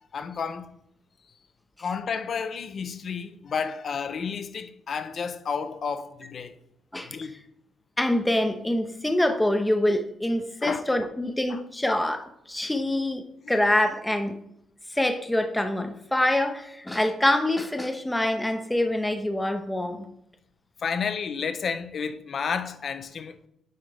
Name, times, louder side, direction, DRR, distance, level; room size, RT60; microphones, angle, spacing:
voice 1, 0.1-0.7 1.8-6.6 7.1-7.4 10.6-10.8 11.5-11.6 20.8-23.4, left 6 dB, 50° left, 0.6 m, -31 dB
voice 2, 6.9-7.3 8.0-14.4 14.9-20.1, left 1 dB, 10° left, 0.6 m, -25 dB
9.3 x 3.9 x 3.4 m
cardioid pair, 90°, 0 cm